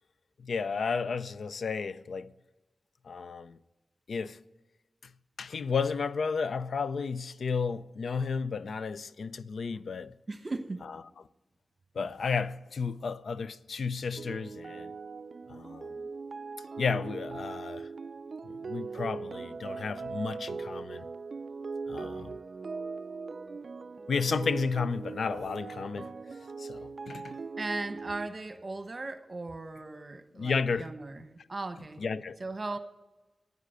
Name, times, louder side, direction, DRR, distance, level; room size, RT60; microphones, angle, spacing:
voice 1, 0.4-2.3 3.0-3.6 4.1-4.4 5.4-10.1 12.0-14.9 15.5-16.1 16.8-17.9 18.5-21.1 21.9-22.4 24.1-26.1 26.6-27.4 30.4-30.9 32.0-32.4, left 5 dB, 85° left, 0.4 m, -32 dB
voice 2, 10.3-10.9 27.6-32.0 32.4-32.8, right 2 dB, 45° right, 1.1 m, -37 dB
sound 1, 14.2-28.3, right 4 dB, 65° right, 0.4 m, -40 dB
9.9 x 9.4 x 7.9 m
cardioid pair, 55°, 0 cm